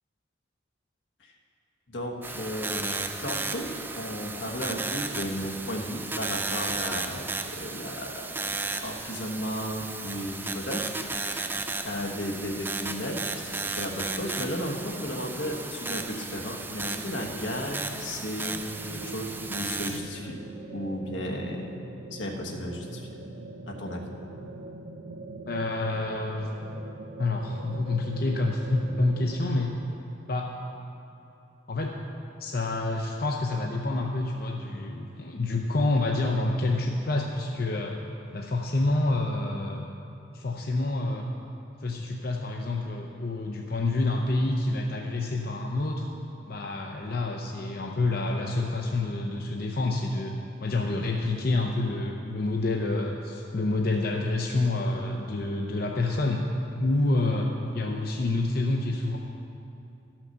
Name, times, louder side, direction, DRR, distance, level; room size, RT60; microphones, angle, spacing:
voice 1, 1.9-3.7 3.9-11.6 11.8-18.6 18.9-20.4 20.7-21.7 22.1-23.1 23.7-24.0, left 1 dB, 80° left, 0 dB, 1.4 m, -34 dB
sound 1, 2.2-20.0, right 3 dB, 10° right, 0.4 m, -34 dB
sound 2, 12.2-29.4, right 2 dB, 80° right, 0.6 m, -43 dB
voice 2, 25.5-26.5 27.2-29.7 30.3-30.5 31.7-31.9 32.4-38.0 38.3-39.9 40.3-41.3 41.8-46.1 46.5-50.3 50.6-56.4 56.8-59.2, left 2 dB, 50° left, 1 dB, 0.6 m, -28 dB
12.5 x 6.0 x 6.6 m, 2.8 s
head